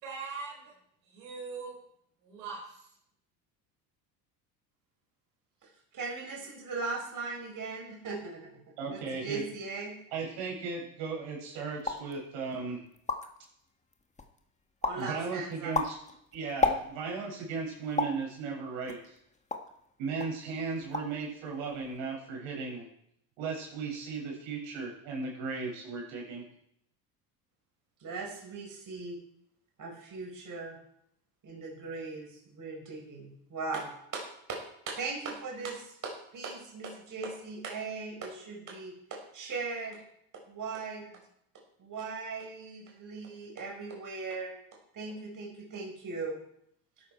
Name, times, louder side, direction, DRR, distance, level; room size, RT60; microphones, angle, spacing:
voice 1, 0.0-0.7 1.0-1.8 2.2-2.8, right 4 dB, 80° right, -3 dB, 5.2 m, -41 dB
voice 2, 5.9-10.0 14.8-15.7 28.0-29.2 29.8-30.8 31.4-40.0 40.5-41.1 41.8-44.5 44.9-46.4, right 4 dB, 40° right, 0 dB, 4.9 m, -39 dB
voice 3, 8.8-9.4 10.1-12.8 14.9-16.0 16.3-19.2 20.0-22.8 23.4-26.4, right 4 dB, 65° right, -1 dB, 6.9 m, -36 dB
sound 1, 11.8-12.1 12.6-12.7 12.9-13.4 13.9-14.4 14.8-15.1 15.5-17.2 18.0-18.3 18.9-19.8 20.2-20.4 20.7-21.2 21.5-22.0, left 3 dB, 15° left, 1.9 m, -32 dB
13.0 x 11.0 x 4.6 m, 0.71 s
hypercardioid pair, 75°, 50 cm